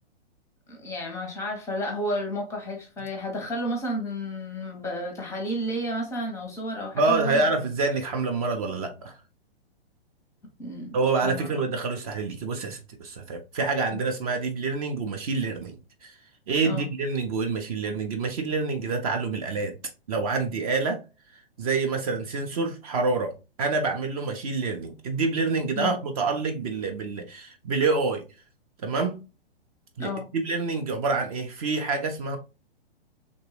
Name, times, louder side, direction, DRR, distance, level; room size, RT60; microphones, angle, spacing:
voice 1, 0.7-7.4 10.6-11.0 11.2-11.5 13.9-14.0 16.6-16.9 25.8-26.0 30.0-30.3, equal, 10° left, 0.6 m, -32 dB
voice 2, 6.9-9.2 10.9-16.1 16.5-19.7 20.1-21.0 21.6-23.3 23.6-28.2 28.8-29.2 30.0-32.4, right 4 dB, 40° right, 0.5 m, -27 dB
3.0 x 2.2 x 3.1 m
figure-of-eight pair, 115°, 31 cm